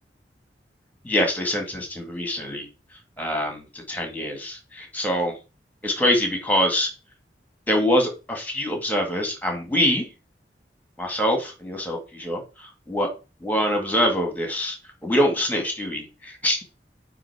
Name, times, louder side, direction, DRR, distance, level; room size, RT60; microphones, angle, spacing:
voice 1, 1.0-2.7 3.2-5.3 5.8-6.9 7.7-10.1 11.0-13.1 13.4-14.8 15.0-16.6, equal, 10° left, 3 dB, 1.8 m, -24 dB
9.1 x 3.1 x 4.8 m, 0.31 s
head